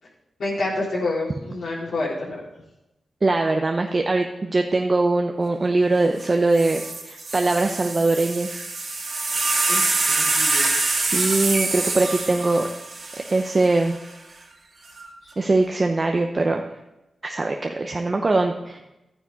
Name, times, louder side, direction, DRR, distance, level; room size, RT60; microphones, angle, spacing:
voice 1, 0.4-2.4 9.7-10.7, left 2 dB, 75° left, -7 dB, 3.8 m, -28 dB
voice 2, 3.2-8.6 10.9-12.7 13.3-14.0 15.4-16.7 17.2-18.8, right 2 dB, 40° right, 3 dB, 0.8 m, -22 dB
sound 1, 6.2-6.3 6.5-13.9 14.8-15.3, right 3 dB, 60° right, 2.1 m, -25 dB
12.5 x 9.4 x 4.0 m, 0.95 s
cardioid pair, 60°, 0 cm